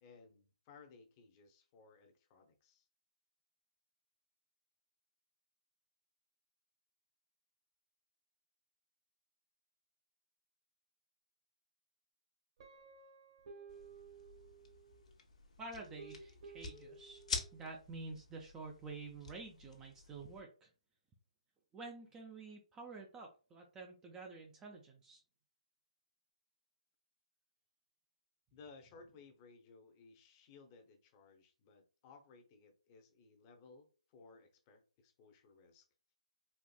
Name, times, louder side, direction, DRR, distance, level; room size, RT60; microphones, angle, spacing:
voice 1, 0.0-2.9 28.5-35.9, left 4 dB, 25° left, 4 dB, 0.7 m, -60 dB
Guitar, 12.6-15.1 15.8-17.7, right 4 dB, 45° right, 1.2 m, -55 dB
sound 1, 13.7-20.4, left 5 dB, 65° left, 0.9 m, -48 dB
voice 2, 15.6-17.2 17.5-20.7 21.7-25.2, right 3 dB, 15° right, 1 dB, 0.4 m, -49 dB
4.2 x 2.4 x 2.3 m, 0.34 s
hypercardioid pair, 150°, 4 cm